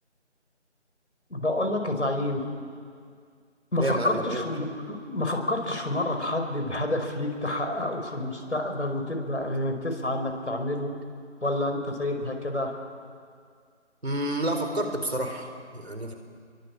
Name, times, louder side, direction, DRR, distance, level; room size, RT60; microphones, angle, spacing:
voice 1, 1.3-2.4 3.7-10.9 11.4-12.7, left 1 dB, 70° left, 4 dB, 5.2 m, -28 dB
voice 2, 3.8-4.4 14.0-16.1, right 1 dB, 60° right, 5 dB, 4.2 m, -29 dB
27.0 x 23.0 x 7.4 m, 2.1 s
figure-of-eight pair, 180°, 36 cm